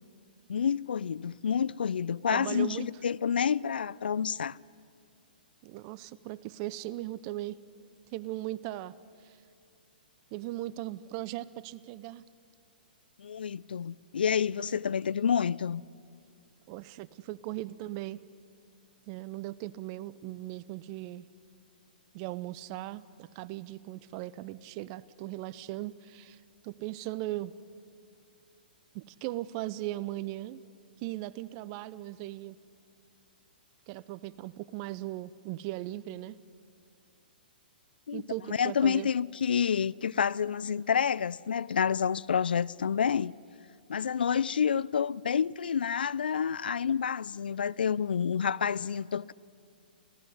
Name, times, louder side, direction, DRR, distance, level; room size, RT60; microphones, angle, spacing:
voice 1, 0.5-4.6 13.2-15.8 38.1-38.2 38.5-43.3 43.9-49.3, left 7 dB, 75° left, 0.5 m, -29 dB
voice 2, 2.3-2.9 5.6-7.6 8.1-8.9 9.2-9.4 10.3-12.2 14.7-14.8 16.7-18.2 19.1-21.2 22.1-26.4 26.6-27.5 28.9-30.6 31.0-32.6 33.9-36.4 38.1-39.1, right 16 dB, 40° right, 0.7 m, -38 dB
26.5 x 17.0 x 9.7 m
hypercardioid pair, 120°, 5 cm